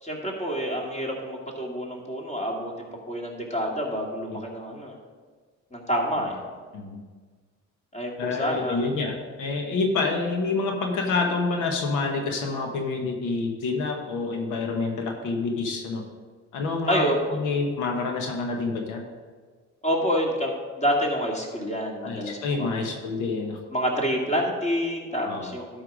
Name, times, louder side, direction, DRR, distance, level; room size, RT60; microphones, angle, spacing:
voice 1, 0.0-4.9 5.7-6.4 7.9-8.8 16.9-17.4 19.8-22.9 23.7-25.8, equal, 25° left, -1 dB, 2.4 m, -28 dB
voice 2, 8.2-16.0 16.5-19.0 22.0-23.6 25.2-25.5, left 3 dB, 90° left, 3 dB, 1.2 m, -28 dB
12.0 x 5.7 x 5.1 m, 1.5 s
cardioid pair, 90°, 30 cm